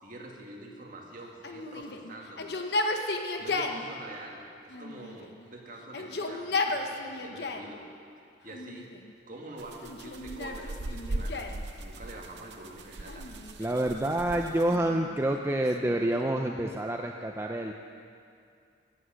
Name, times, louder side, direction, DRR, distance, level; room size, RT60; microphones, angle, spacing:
voice 1, 0.0-2.5 3.4-7.9 8.4-8.9 9.3-11.5 11.7-13.3, right 1 dB, 45° right, -1 dB, 1.9 m, -45 dB
Yell, 1.4-3.8 4.7-5.5 5.8-7.7 8.5-9.1 9.8-11.6 13.0-13.9 14.7-16.4, left 2 dB, 60° left, 0.8 m, -34 dB
sound 1, 9.6-14.8, right 2 dB, 65° right, 0.7 m, -39 dB
voice 2, 13.6-17.7, right 1 dB, 15° right, 2 dB, 0.4 m, -28 dB
15.5 x 8.2 x 6.4 m, 2.4 s
head